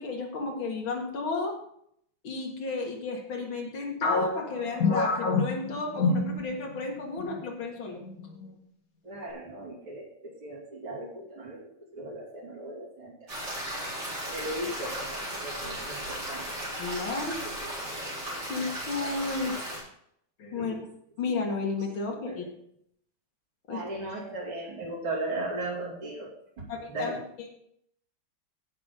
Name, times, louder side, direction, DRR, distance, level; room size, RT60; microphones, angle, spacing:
voice 1, 0.0-1.6 2.2-8.0 16.8-17.7 18.5-19.6 20.4-20.9 21.2-22.4 23.7-23.8 26.7-27.5, left 3 dB, 80° left, 0 dB, 2.7 m, -33 dB
sound 1, 4.0-6.9 7.2-7.4 8.0-8.5, left 3 dB, 50° left, 1.6 m, -27 dB
voice 2, 9.0-13.1 14.2-16.5 20.6-20.8 22.1-22.5 23.7-26.3 26.6-27.2, right 2 dB, 85° right, -3 dB, 3.7 m, -37 dB
sound 2, 13.3-19.8, equal, 55° right, 4.4 m, -36 dB
16.0 x 6.0 x 3.8 m, 0.71 s
omnidirectional pair, 2.2 m